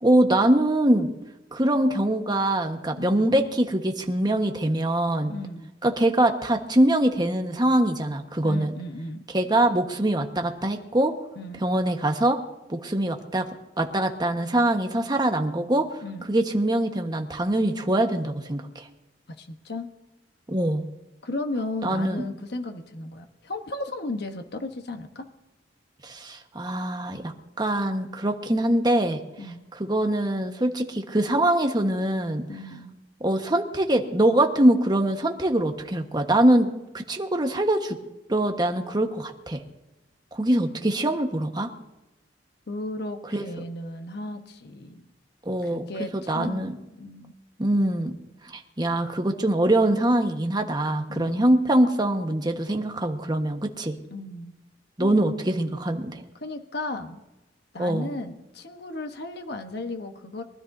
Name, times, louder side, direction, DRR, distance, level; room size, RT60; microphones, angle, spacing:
voice 1, 0.0-1.1 1.5-5.3 5.8-8.7 9.3-11.1 11.6-12.4 12.7-13.5 13.8-16.0 16.3-18.9 20.5-20.8 21.8-22.3 26.0-29.2 29.8-32.4 33.2-36.7 36.9-38.0 38.3-39.6 40.3-41.7 43.3-43.4 45.4-45.9 46.1-46.7 47.6-48.1 48.4-54.0 55.0-56.2 57.8-58.1, right 1 dB, 25° right, 4 dB, 1.3 m, -23 dB
voice 2, 3.0-3.3 5.3-5.7 8.4-9.2 11.4-11.6 16.0-16.3 19.4-19.9 21.2-25.3 29.4-29.6 32.5-32.9 42.7-45.0 45.6-47.4 51.1-51.5 54.1-54.5 55.0-55.1 56.4-57.2 57.7-60.4, left 2 dB, 65° left, 6 dB, 1.1 m, -35 dB
23.5 x 13.0 x 2.7 m, 1.0 s
head